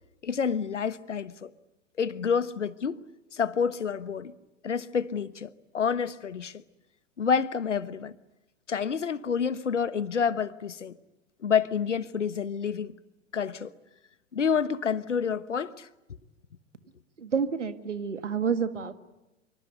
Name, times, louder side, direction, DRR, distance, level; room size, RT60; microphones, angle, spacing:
voice 1, 0.2-1.5 2.0-3.0 3.3-4.3 4.6-6.6 7.2-8.1 8.7-11.0 11.4-12.9 13.3-13.7 14.3-15.9, left 6 dB, 75° left, 1.2 m, -28 dB
voice 2, 17.2-18.9, right 6 dB, 75° right, 1.8 m, -29 dB
26.5 x 24.0 x 9.1 m
figure-of-eight pair, 100°, 36 cm